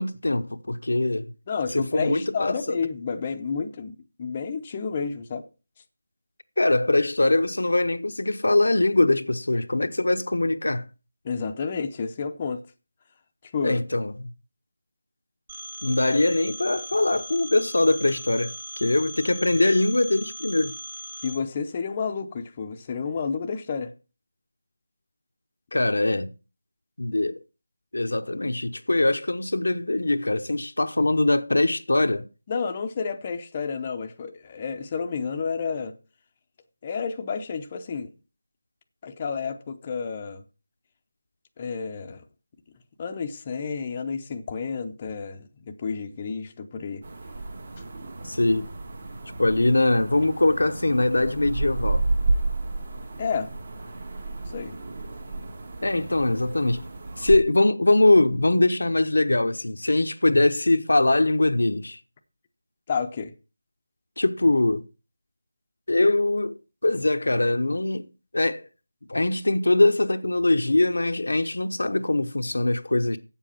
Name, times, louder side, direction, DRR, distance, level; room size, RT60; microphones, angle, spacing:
voice 1, 0.0-1.3 1.7-2.8 6.6-10.8 13.6-14.3 15.8-20.8 25.7-26.3 27.0-27.4 27.9-32.2 48.2-48.7 49.4-52.1 55.8-56.8 57.2-62.0 64.2-64.9 65.9-68.1 68.3-68.6 69.1-73.2, left 2 dB, 80° left, 0.9 m, -22 dB
voice 2, 1.5-5.4 11.2-12.6 13.4-13.8 21.2-23.9 32.5-36.0 36.8-38.1 39.0-40.4 41.6-42.2 43.0-47.0 53.2-53.6 54.5-54.8 62.9-63.3, left 5 dB, 25° left, 0.7 m, -30 dB
Telephone, 15.5-21.3, right 1 dB, 20° right, 1.2 m, -39 dB
sound 1, 47.0-57.4, right 2 dB, 45° right, 1.7 m, -31 dB
8.3 x 7.3 x 5.7 m
figure-of-eight pair, 170°, 0 cm